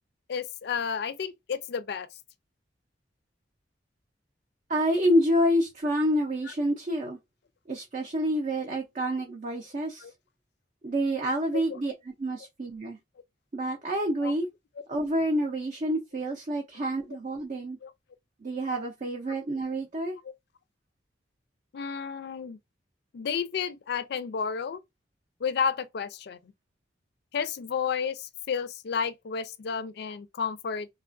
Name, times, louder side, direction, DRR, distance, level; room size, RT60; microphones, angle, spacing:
voice 1, 0.3-2.1 9.1-9.2 10.0-10.1 14.2-14.3 17.8-17.9 21.7-22.6 23.1-24.8 25.4-26.4 27.3-30.9, left 6 dB, 60° left, 0.4 m, -31 dB
voice 2, 4.7-7.2 7.7-10.1 10.8-13.0 13.5-14.5 14.9-17.8 18.4-20.2, equal, 40° right, 0.5 m, -28 dB
3.2 x 2.3 x 2.5 m
head